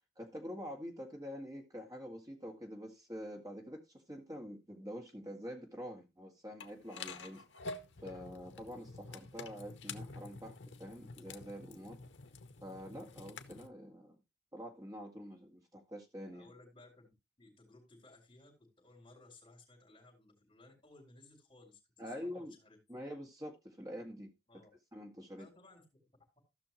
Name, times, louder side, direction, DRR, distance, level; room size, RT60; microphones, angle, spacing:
voice 1, 0.2-7.4 8.0-12.0 12.6-14.2 14.5-16.5 22.0-22.6 22.9-24.3 24.9-25.5, equal, 20° right, 2.1 m, -46 dB
sound 1, 6.6-13.7, left 3 dB, 85° left, 0.9 m, -48 dB
voice 2, 16.3-22.8 24.5-24.7 25.4-26.4, left 2 dB, 25° left, 5.0 m, -60 dB
15.5 x 6.1 x 3.0 m
head